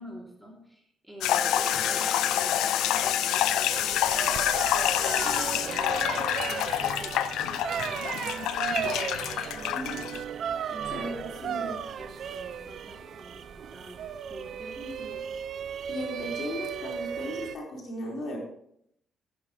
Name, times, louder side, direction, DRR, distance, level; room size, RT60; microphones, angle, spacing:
voice 1, 0.0-7.2 7.4-10.1 10.7-11.1 11.4-15.4, equal, 5° right, -2 dB, 2.7 m, -46 dB
sound 1, 1.2-10.2, left 12 dB, 90° left, 0.5 m, -27 dB
sound 2, 1.3-10.3, left 4 dB, 35° left, 0.8 m, -40 dB
sound 3, 3.7-17.6, right 8 dB, 65° right, 0.6 m, -35 dB
voice 2, 9.7-10.1 10.9-11.8 15.9-18.4, equal, 60° left, -2 dB, 4.1 m, -36 dB
12.0 x 11.0 x 3.1 m, 0.73 s
cardioid pair, 90°, 0 cm